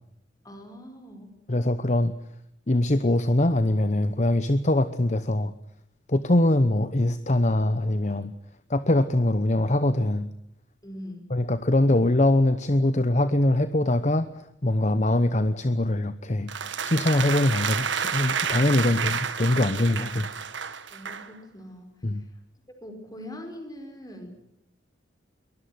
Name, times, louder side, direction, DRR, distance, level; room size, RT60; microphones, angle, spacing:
voice 1, 0.4-1.4 10.8-11.3 20.9-22.3 22.8-24.3, left 1 dB, 20° left, 6 dB, 5.2 m, -42 dB
voice 2, 1.5-2.1 2.7-5.5 6.1-8.3 8.7-10.3 11.3-16.5 16.8-20.3 22.0-22.2, left 1 dB, 35° left, 12 dB, 0.9 m, -23 dB
sound 1, 16.5-21.3, right 7 dB, 70° right, 1.6 m, -30 dB
23.0 x 20.0 x 9.5 m, 0.77 s
head